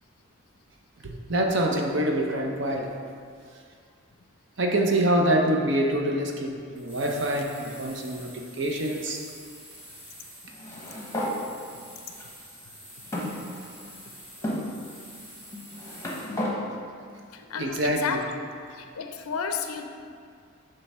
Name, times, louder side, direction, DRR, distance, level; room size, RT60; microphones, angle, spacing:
voice 1, 1.0-2.9 4.6-9.2 17.6-18.2, right 1 dB, 55° right, 1 dB, 0.8 m, -25 dB
sound 1, 6.8-16.4, equal, 5° right, 1.6 m, -47 dB
sound 2, 10.5-11.4 12.2-12.3 13.1-13.9 14.4-14.6 15.5-16.6, left 1 dB, 15° left, 0.8 m, -32 dB
voice 2, 17.3-18.3 18.7-19.9, left 6 dB, 90° left, 5 dB, 0.5 m, -32 dB
7.7 x 3.4 x 5.4 m, 2.2 s
head